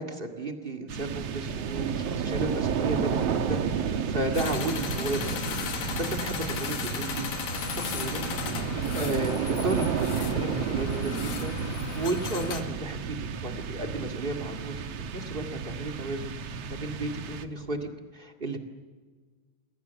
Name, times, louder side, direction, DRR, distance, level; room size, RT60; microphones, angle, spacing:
voice 1, 0.0-8.3 8.9-14.8 15.1-16.3 16.7-18.6, right 2 dB, 40° right, 3 dB, 0.7 m, -34 dB
sound 1, 0.9-17.8, right 6 dB, 70° right, 1.5 m, -32 dB
sound 2, 2.6-11.2, right 1 dB, 20° right, 6.4 m, -51 dB
sound 3, 4.3-12.6, left 8 dB, 60° left, 3.2 m, -36 dB
29.0 x 23.5 x 7.1 m, 1.5 s
omnidirectional pair, 4.6 m